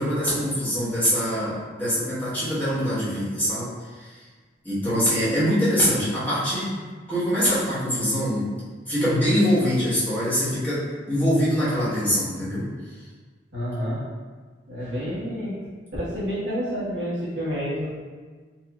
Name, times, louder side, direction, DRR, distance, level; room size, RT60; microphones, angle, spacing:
voice 1, 0.0-3.7 4.0-4.2 4.6-6.8 7.1-8.5 8.9-12.7, equal, 10° left, -12 dB, 1.1 m, -23 dB
voice 2, 13.5-14.0 14.7-15.6 15.9-17.9, equal, 70° right, -9 dB, 1.2 m, -29 dB
4.3 x 2.7 x 2.3 m, 1.5 s
head